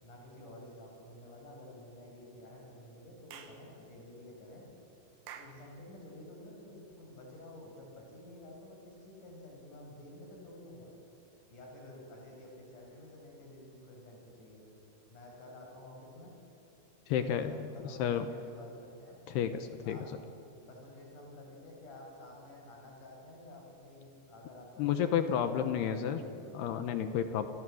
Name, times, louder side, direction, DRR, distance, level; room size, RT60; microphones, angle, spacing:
voice 1, 0.0-4.6 5.3-10.9 11.5-14.6 15.1-16.4 17.1-19.2 19.8-20.2 20.6-26.6, left 1 dB, 40° left, 0 dB, 6.8 m, -51 dB
Clapping / Chirp tweet, 3.3-3.6 5.3-5.6, right 8 dB, 80° right, 4.2 m, -48 dB
voice 2, 17.1-18.3 19.3-20.0 24.8-26.2 26.5-27.5, left 8 dB, 75° left, 9 dB, 2.6 m, -31 dB
29.0 x 24.0 x 7.8 m, 2.8 s
omnidirectional pair, 5.8 m